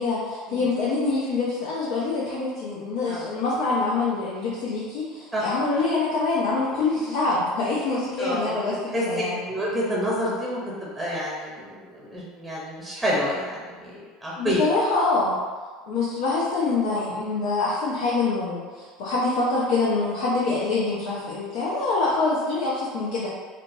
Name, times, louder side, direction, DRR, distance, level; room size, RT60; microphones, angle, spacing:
voice 1, 0.0-9.4 14.4-15.4 15.9-23.3, left 3 dB, 60° left, -7 dB, 0.6 m, -25 dB
voice 2, 8.2-8.5 8.9-9.0 9.5-14.6, equal, 5° right, -5 dB, 0.8 m, -28 dB
3.9 x 2.2 x 2.6 m, 1.5 s
figure-of-eight pair, 70°, 0 cm